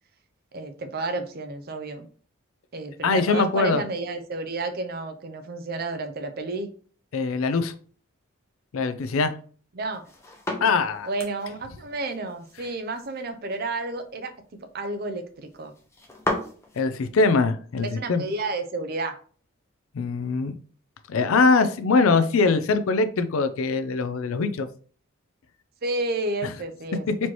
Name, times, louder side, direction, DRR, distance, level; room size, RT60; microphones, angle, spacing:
voice 1, 0.5-2.1 2.7-6.7 9.7-10.0 11.0-14.3 14.7-15.7 17.9-19.2 25.8-27.1, right 2 dB, 45° right, 7 dB, 0.5 m, -31 dB
voice 2, 3.0-3.8 7.1-7.7 8.7-9.3 10.6-11.1 16.8-18.2 19.9-20.5 21.1-24.7, left 4 dB, 75° left, 10 dB, 0.4 m, -22 dB
sound 1, 9.9-16.9, left 1 dB, 15° left, 0.7 m, -36 dB
4.2 x 3.0 x 2.9 m, 0.43 s
head